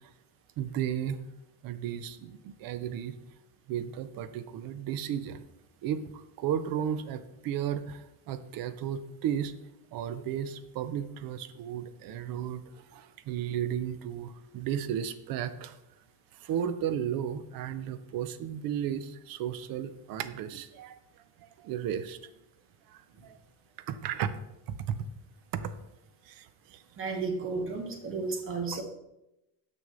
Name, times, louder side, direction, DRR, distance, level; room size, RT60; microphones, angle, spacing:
voice 1, 0.6-1.2 1.6-3.2 3.7-5.4 5.8-9.5 9.9-12.6 12.9-15.8 16.4-21.0 21.4-22.2 22.9-23.4 23.9-24.3 24.8-25.1 25.5-25.7 26.3-26.8, right 9 dB, 55° right, 13 dB, 0.5 m, -34 dB
voice 2, 27.0-28.8, right 4 dB, 30° right, 5 dB, 1.0 m, -33 dB
6.1 x 6.0 x 3.7 m, 0.90 s
cardioid pair, 160°, 43 cm